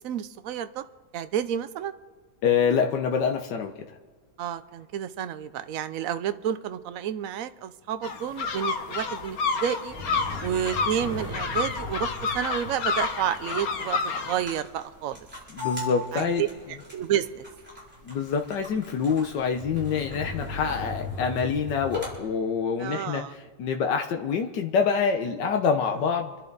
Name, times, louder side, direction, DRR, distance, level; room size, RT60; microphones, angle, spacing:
voice 1, 0.0-0.8 1.1-1.9 4.4-9.9 10.4-15.2 16.1-16.5 16.9-17.4 22.8-23.3, right 10 dB, 60° right, 11 dB, 1.0 m, -30 dB
voice 2, 2.4-4.0 15.5-16.5 18.0-26.3, left 6 dB, 85° left, 4 dB, 1.6 m, -26 dB
sound 1, 8.0-14.4, left 5 dB, 60° left, 1.5 m, -30 dB
sound 2, 8.5-22.2, left 2 dB, 5° right, 5.1 m, -39 dB
27.5 x 11.0 x 4.0 m, 1.5 s
omnidirectional pair, 1.9 m